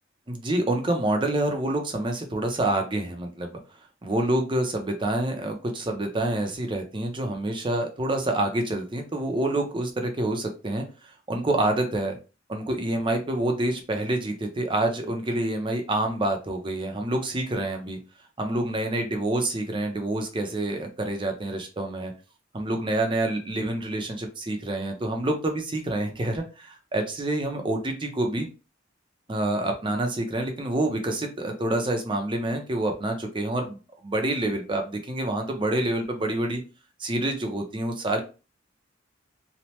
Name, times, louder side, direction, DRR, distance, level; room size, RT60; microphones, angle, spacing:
voice 1, 0.3-3.6 4.0-10.8 11.3-12.2 12.5-18.0 18.4-22.1 22.5-28.5 29.3-36.6 37.0-38.2, right 1 dB, 25° right, 4 dB, 0.6 m, -27 dB
3.1 x 2.1 x 2.8 m, 0.32 s
head